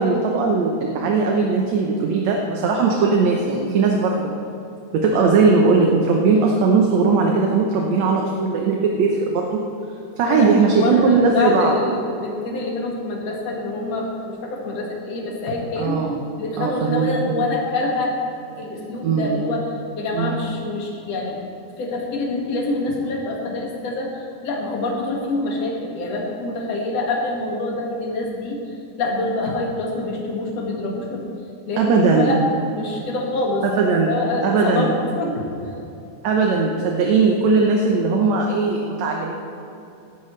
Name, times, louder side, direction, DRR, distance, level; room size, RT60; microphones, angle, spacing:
voice 1, 0.0-4.3 4.9-9.6 10.2-11.7 15.8-16.1 16.6-17.1 19.0-19.3 20.1-20.4 31.8-32.4 33.7-34.1 34.4-35.0 36.2-39.3, right 4 dB, 70° right, 0 dB, 2.1 m, -19 dB
voice 2, 10.3-16.0 16.4-18.2 18.6-21.4 21.8-31.3 31.7-32.4 32.7-33.7 33.9-35.7, left 2 dB, 55° left, -2 dB, 2.9 m, -26 dB
17.0 x 12.5 x 3.3 m, 2.8 s
omnidirectional pair, 3.6 m